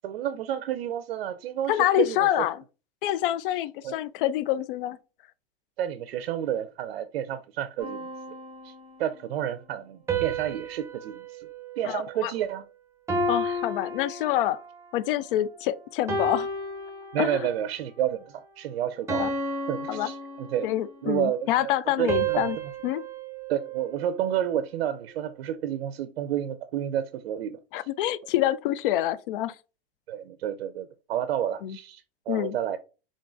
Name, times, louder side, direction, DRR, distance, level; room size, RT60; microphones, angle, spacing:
voice 1, 0.0-2.4 3.8-3.9 5.8-8.1 8.6-8.7 9.0-11.5 11.8-12.6 17.1-19.3 19.7-20.7 21.0-22.4 23.5-27.9 30.1-32.8, right 10 dB, 70° right, 0.5 m, -30 dB
voice 2, 1.7-2.6 3.0-5.0 11.8-12.3 13.3-14.6 14.9-16.5 17.2-17.4 19.2-19.3 19.9-20.1 20.6-22.6 22.8-23.0 27.7-29.6 31.6-31.8 32.3-32.6, left 13 dB, 60° left, 0.4 m, -26 dB
sound 1, 7.8-9.1 10.1-12.6 13.1-14.8 15.4-15.6 16.1-17.6 18.1-18.4 19.1-21.0 22.1-24.5, right 2 dB, 10° right, 0.8 m, -33 dB
3.7 x 3.7 x 2.5 m
hypercardioid pair, 115°, 31 cm